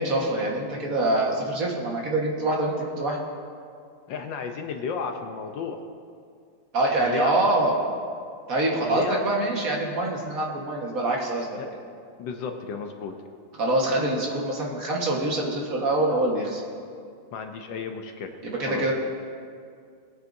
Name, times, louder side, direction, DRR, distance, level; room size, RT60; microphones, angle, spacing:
voice 1, 0.0-3.2 6.7-7.8 8.5-11.6 13.6-16.6 18.4-18.9, right 2 dB, 45° right, -2 dB, 1.8 m, -25 dB
voice 2, 4.1-5.8 7.0-7.3 8.8-9.2 11.6-11.7 12.2-13.1 17.3-18.4 18.7-18.9, left 6 dB, 70° left, 5 dB, 1.3 m, -33 dB
19.5 x 9.0 x 2.7 m, 2.2 s
omnidirectional pair, 2.3 m